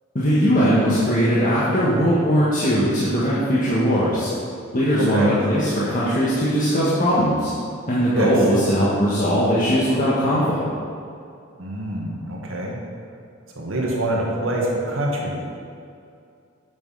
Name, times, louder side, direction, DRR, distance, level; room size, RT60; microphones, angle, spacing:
voice 1, 0.1-4.3 4.7-7.5 7.9-10.6, equal, 40° left, -9 dB, 1.6 m, -19 dB
voice 2, 11.6-12.8 13.6-15.4, right 1 dB, 70° right, -2 dB, 1.8 m, -25 dB
8.3 x 6.3 x 5.6 m, 2.4 s
head